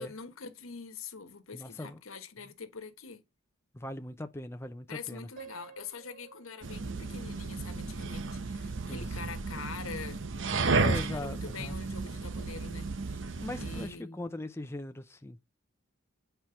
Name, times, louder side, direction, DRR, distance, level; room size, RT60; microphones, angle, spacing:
voice 1, 0.0-3.2 4.9-10.2 10.6-14.2, left 5 dB, 85° left, 1.3 m, -44 dB
voice 2, 1.5-2.0 3.7-5.3 8.9-9.3 10.8-11.7 13.4-15.4, left 1 dB, 10° left, 0.5 m, -40 dB
Piano, 5.4-8.4, right 6 dB, 40° right, 1.8 m, -53 dB
sound 1, 6.6-13.9, right 3 dB, 65° right, 0.8 m, -33 dB
8.5 x 4.5 x 5.7 m
head